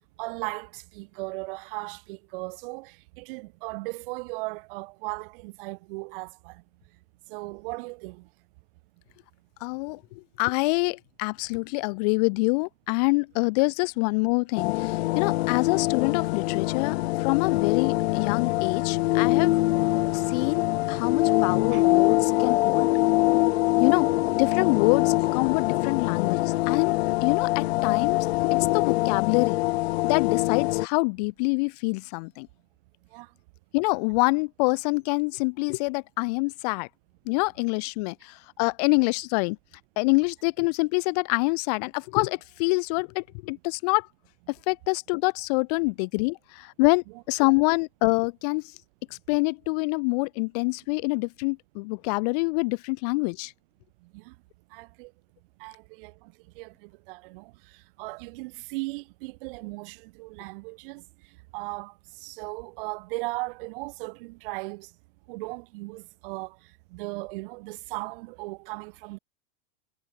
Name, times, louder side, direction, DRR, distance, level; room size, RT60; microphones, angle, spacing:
voice 1, 0.2-6.6 7.3-8.3 21.7-21.8 33.1-33.3 54.1-54.3 54.7-55.1 55.6-56.1 56.6-57.5 58.0-61.0 61.5-61.9 62.2-64.9 65.3-66.6 66.9-69.2, right 26 dB, 50° right, 2.6 m, -37 dB
voice 2, 9.6-10.0 10.4-19.5 20.1-22.9 23.8-24.1 24.4-26.9 27.2-29.6 30.0-32.5 33.7-36.9 37.3-39.6 40.0-44.1 44.5-48.6 49.1-53.5, left 30 dB, 35° left, 0.5 m, -26 dB
sound 1, 14.6-30.9, left 19 dB, 60° left, 1.1 m, -24 dB
supercardioid pair, 165°, 35 cm